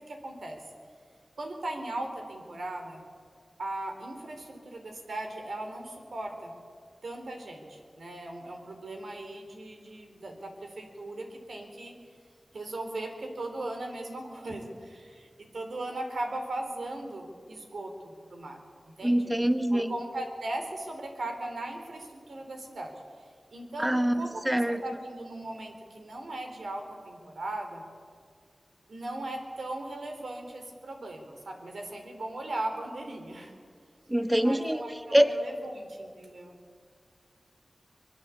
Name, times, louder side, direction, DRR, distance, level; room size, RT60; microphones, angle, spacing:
voice 1, 0.1-0.6 1.4-3.0 3.6-6.5 7.0-12.0 12.5-18.6 18.8-19.4 19.7-23.0 23.5-27.8 28.9-33.6 34.4-36.6, right 1 dB, 80° right, 4 dB, 4.2 m, -38 dB
voice 2, 19.0-19.9 23.8-24.8 34.1-34.8 35.1-35.3, right 1 dB, 10° right, 8 dB, 1.8 m, -24 dB
24.0 x 21.5 x 8.5 m, 2.1 s
wide cardioid pair, 65°, 0 cm